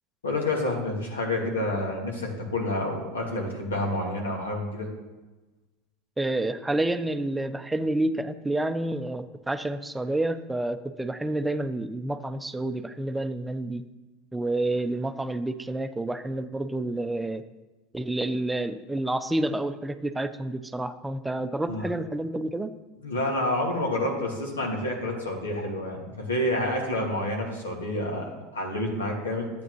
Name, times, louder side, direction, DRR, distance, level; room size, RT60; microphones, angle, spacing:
voice 1, 0.2-4.9 21.6-21.9 23.0-29.5, left 1 dB, 90° left, 0 dB, 2.0 m, -29 dB
voice 2, 6.2-13.8 14.3-17.4 17.9-22.8, right 1 dB, 10° right, 10 dB, 0.6 m, -29 dB
12.0 x 8.2 x 3.1 m, 1.1 s
hypercardioid pair, 85°, 0 cm